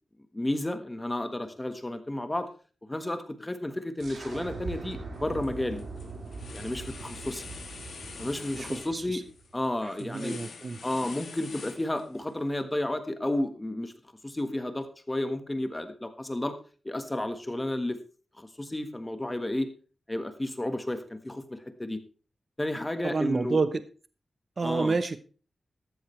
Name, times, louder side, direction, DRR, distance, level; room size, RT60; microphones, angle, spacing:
voice 1, 0.3-2.5 2.9-5.8 6.5-7.4 8.2-9.2 9.5-10.4 10.8-13.9 14.2-16.5 16.8-18.0 18.4-19.7 20.1-22.0 22.6-23.6 24.6-24.9, left 1 dB, 15° left, 1.4 m, -32 dB
sound 1, 4.0-9.5, right 4 dB, 90° right, 4.7 m, -41 dB
sound 2, 5.1-5.5 5.8-12.3, left 4 dB, 75° left, 2.5 m, -45 dB
voice 2, 8.5-9.2 9.8-10.8 23.0-23.8 24.6-25.2, right 4 dB, 40° right, 0.8 m, -29 dB
13.5 x 13.0 x 3.3 m
wide cardioid pair, 145°, 0 cm